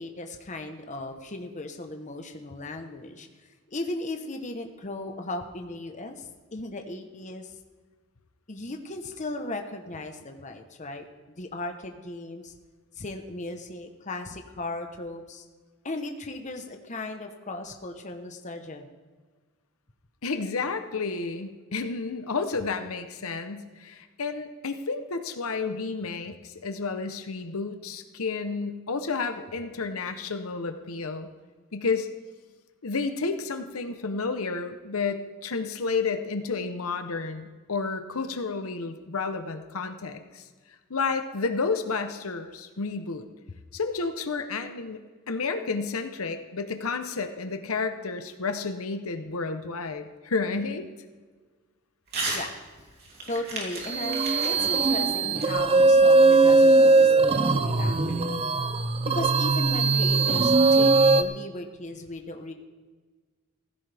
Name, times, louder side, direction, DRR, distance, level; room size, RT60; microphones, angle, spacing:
voice 1, 0.0-7.6 8.5-11.0 11.4-12.5 13.0-15.4 15.8-18.9 52.3-52.6 53.3-58.3 59.1-62.5, left 2 dB, 35° left, 5 dB, 1.0 m, -37 dB
voice 2, 20.2-31.3 31.7-32.1 32.8-40.4 40.9-43.2 43.7-50.9, left 4 dB, 75° left, 8 dB, 0.9 m, -31 dB
Crumpling crinkling / Tearing, 52.1-52.5 52.8-56.1, right 2 dB, 45° right, 3.1 m, -35 dB
sound 1, 53.9-61.2, right 3 dB, 25° right, 0.5 m, -20 dB
16.5 x 15.0 x 3.5 m, 1.4 s
head